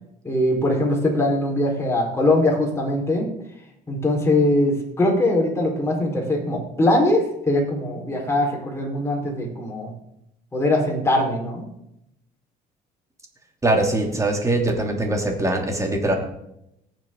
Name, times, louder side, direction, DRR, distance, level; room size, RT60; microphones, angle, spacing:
voice 1, 0.2-3.3 3.9-9.9 10.5-11.6, left 1 dB, 15° left, -1 dB, 4.5 m, -21 dB
voice 2, 13.6-16.1, right 2 dB, 20° right, 2 dB, 2.9 m, -22 dB
18.5 x 7.5 x 3.9 m, 0.80 s
cardioid pair, 110°, 17 cm